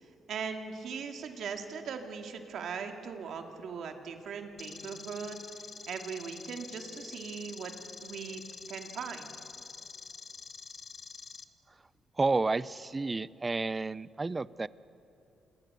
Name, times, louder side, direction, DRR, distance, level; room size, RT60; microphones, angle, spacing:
voice 1, 0.3-7.7 8.0-8.4 8.7-9.3, right 6 dB, 70° right, 4 dB, 2.4 m, -39 dB
sound 1, 4.6-11.4, left 5 dB, 40° left, 1.0 m, -47 dB
voice 2, 12.2-14.7, right 3 dB, 25° right, 19 dB, 0.5 m, -30 dB
27.5 x 21.0 x 6.9 m, 2.7 s
cardioid pair, 90°, 0 cm